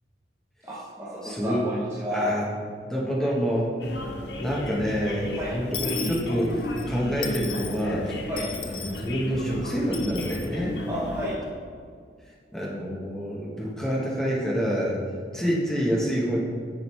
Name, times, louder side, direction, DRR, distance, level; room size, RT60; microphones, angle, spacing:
voice 1, 0.6-2.4 3.2-3.3 5.3-5.7 8.3-8.6 10.9-11.5, equal, 15° right, -8 dB, 0.8 m, -32 dB
voice 2, 1.2-1.6 2.1-2.4 2.9-3.7 4.4-8.2 8.6-10.8 12.5-15.0 15.3-16.4, equal, 5° left, -5 dB, 1.1 m, -27 dB
sound 1, 3.8-11.4, left 1 dB, 70° left, 0.6 m, -34 dB
Dishes pots and pans / Coin (dropping), 5.7-6.8 7.2-7.8 8.4-9.1 9.9-10.5, left 7 dB, 30° left, 0.4 m, -36 dB
7.2 x 5.2 x 3.2 m, 2.1 s
head